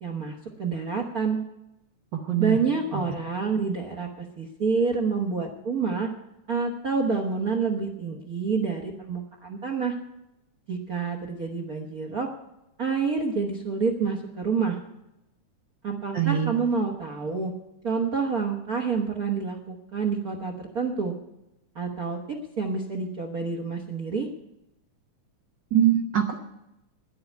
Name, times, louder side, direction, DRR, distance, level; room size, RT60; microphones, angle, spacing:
voice 1, 0.0-1.4 2.4-6.1 6.5-9.9 10.7-12.3 12.8-14.8 15.8-17.5 17.8-21.1 21.7-24.3, right 5 dB, 60° right, 1 dB, 0.9 m, -28 dB
voice 2, 2.1-2.6 2.9-3.0 16.1-16.5 25.7-26.3, right 10 dB, 85° right, 3 dB, 0.9 m, -23 dB
10.5 x 8.7 x 9.1 m, 0.88 s
omnidirectional pair, 3.6 m